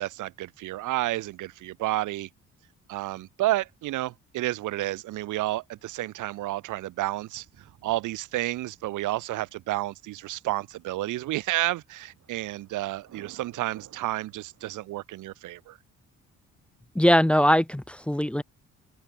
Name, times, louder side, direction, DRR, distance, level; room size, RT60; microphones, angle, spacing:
voice 1, 0.0-2.3 2.9-15.8, right 16 dB, 85° right, 1.4 m, -31 dB
Thunder, 5.8-14.8, right 10 dB, 60° right, 4.5 m, -58 dB
voice 2, 17.0-18.4, equal, 5° left, 0.4 m, -21 dB
open air
cardioid pair, 90°, 30 cm